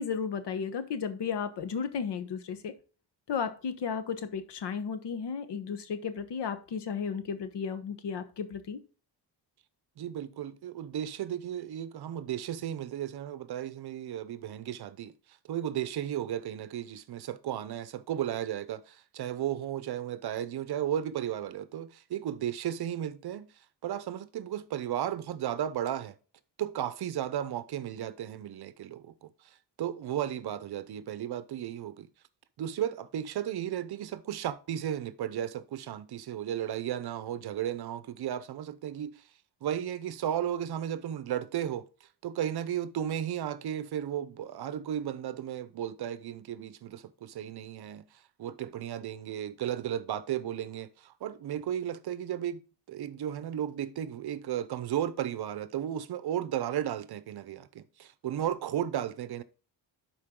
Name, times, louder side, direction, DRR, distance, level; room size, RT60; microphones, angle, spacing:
voice 1, 0.0-2.7 3.3-8.8, left 6 dB, 65° left, 1.2 m, -34 dB
voice 2, 10.0-15.1 15.5-23.5 23.8-26.1 26.6-32.1 32.6-39.1 39.6-48.1 48.4-52.6 52.9-59.4, right 10 dB, 60° right, 0.7 m, -34 dB
11.5 x 4.6 x 3.7 m
cardioid pair, 115°, 44 cm